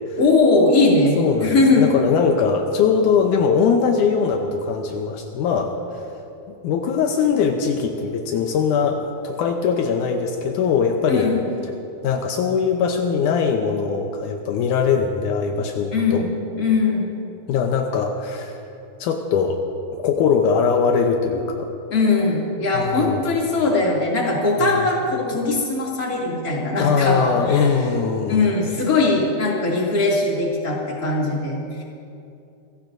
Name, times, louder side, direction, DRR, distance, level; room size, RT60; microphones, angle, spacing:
voice 1, 0.2-1.9 11.1-11.4 15.9-16.3 16.6-17.1 21.9-27.7 28.3-31.8, left 3 dB, 25° left, -4 dB, 2.4 m, -20 dB
voice 2, 1.2-5.7 6.6-11.3 12.0-16.3 17.5-18.6 19.0-19.6 20.0-21.7 22.7-23.3 24.6-24.8 26.8-28.5, left 6 dB, 90° left, 3 dB, 1.7 m, -21 dB
27.5 x 17.0 x 2.6 m, 2.7 s
omnidirectional pair, 4.7 m